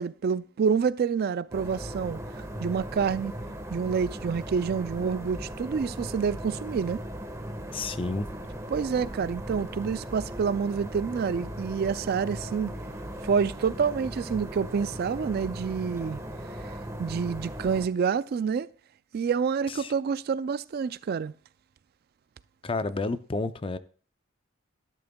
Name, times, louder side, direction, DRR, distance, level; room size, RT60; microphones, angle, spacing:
voice 1, 0.0-3.3 3.7-7.0 8.7-12.7 13.2-16.2 17.0-18.7 19.1-21.3, right 6 dB, 50° right, 0.3 m, -28 dB
sound 1, 1.5-17.9, equal, 15° right, 1.3 m, -38 dB
voice 2, 7.7-8.3 19.7-19.9 22.6-23.8, left 3 dB, 25° left, 0.5 m, -30 dB
12.5 x 10.5 x 2.2 m
head